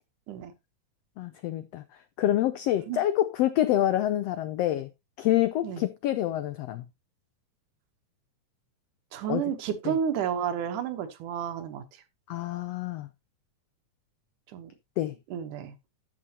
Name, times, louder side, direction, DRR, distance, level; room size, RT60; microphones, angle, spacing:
voice 1, 1.2-1.8 2.2-4.9 5.2-6.8 9.3-9.4 9.8-9.9 12.3-13.1 15.0-15.1, left 13 dB, 85° left, 1.4 m, -27 dB
voice 2, 9.1-11.8 14.5-14.7 15.3-15.7, right 8 dB, 85° right, 2.7 m, -31 dB
11.5 x 7.6 x 2.9 m
omnidirectional pair, 3.5 m